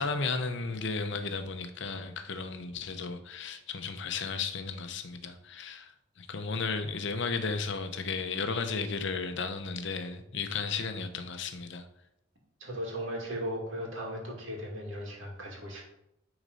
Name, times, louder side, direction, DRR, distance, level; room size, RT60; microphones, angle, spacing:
voice 1, 0.0-11.8, left 4 dB, 55° left, 8 dB, 0.8 m, -34 dB
voice 2, 12.6-15.8, equal, 65° right, -1 dB, 2.4 m, -37 dB
9.5 x 4.1 x 5.4 m, 0.80 s
head